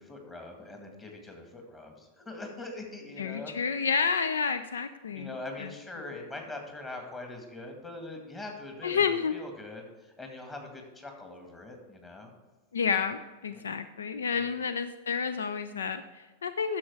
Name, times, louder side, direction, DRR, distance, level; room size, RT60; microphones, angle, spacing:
voice 1, 0.0-3.5 5.1-12.3 13.5-13.6 14.3-14.4, left 2 dB, 15° left, 2 dB, 2.0 m, -42 dB
voice 2, 3.2-5.3 5.6-5.7 8.8-9.3 12.7-16.8, left 6 dB, 70° left, 11 dB, 0.4 m, -30 dB
10.0 x 7.0 x 4.7 m, 1.2 s
figure-of-eight pair, 90°, 0 cm